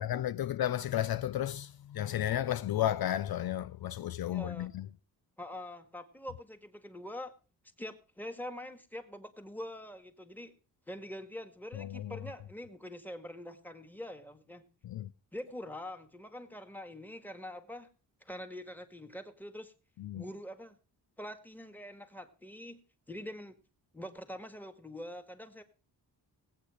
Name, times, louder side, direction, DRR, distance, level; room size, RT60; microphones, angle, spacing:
voice 1, 0.0-4.9 11.7-12.2 14.8-15.1 20.0-20.2, left 12 dB, 65° left, 0.5 m, -33 dB
voice 2, 4.2-4.7 5.4-7.3 7.8-10.5 10.9-14.7 15.3-17.9 18.2-19.7 20.1-20.8 21.2-22.8 23.1-23.6 23.9-25.6, left 1 dB, 5° left, 1.8 m, -44 dB
18.5 x 8.6 x 4.9 m
wide cardioid pair, 135°, 40 cm